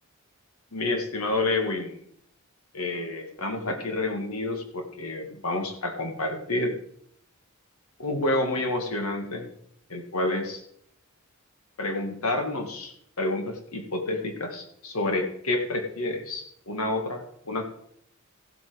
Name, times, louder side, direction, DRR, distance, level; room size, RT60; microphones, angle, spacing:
voice 1, 0.7-2.0 2.7-6.8 8.0-9.5 9.9-10.6 11.8-17.7, left 2 dB, 90° left, 5 dB, 2.1 m, -29 dB
15.0 x 7.9 x 5.1 m, 0.69 s
head